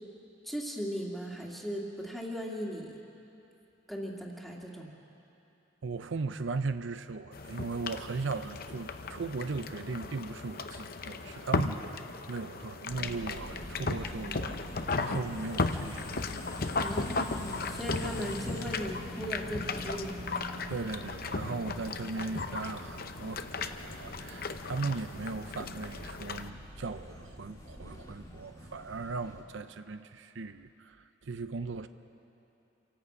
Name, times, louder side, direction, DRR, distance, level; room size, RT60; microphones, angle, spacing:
voice 1, 0.4-3.0 3.9-4.9 16.8-20.1, equal, ahead, -2 dB, 2.1 m, -38 dB
voice 2, 5.8-12.0 12.3-14.6 15.0-16.3 20.7-31.0 31.2-31.9, right 4 dB, 75° right, 10 dB, 0.6 m, -37 dB
sound 1, 7.3-26.5, left 3 dB, 50° left, 0.7 m, -36 dB
sound 2, 12.9-29.4, equal, 20° left, 2.2 m, -45 dB
27.5 x 11.5 x 8.3 m, 2.9 s
head